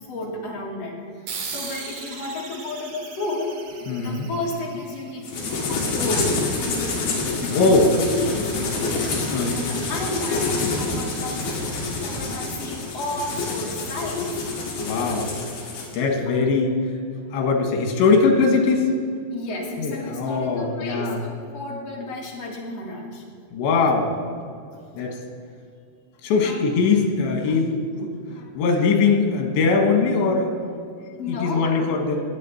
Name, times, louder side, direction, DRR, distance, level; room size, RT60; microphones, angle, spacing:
voice 1, 0.1-1.0 1.4-3.6 4.0-14.3 16.3-16.5 19.3-23.2 24.7-25.1 26.4-26.6 31.2-31.9, left 2 dB, 45° left, -3 dB, 2.6 m, -32 dB
sound 1, 1.3-6.2, right 5 dB, 85° right, 1.4 m, -38 dB
voice 2, 3.9-4.3 7.4-7.9 9.3-9.5 14.8-15.3 15.9-16.7 17.3-18.9 19.8-21.2 23.5-24.1 25.0-25.2 26.2-30.5 31.3-32.2, left 4 dB, 90° left, 3 dB, 3.8 m, -21 dB
sound 2, 5.2-16.0, left 3 dB, 65° left, 3.7 m, -27 dB
19.5 x 8.3 x 4.3 m, 2.2 s
omnidirectional pair, 5.0 m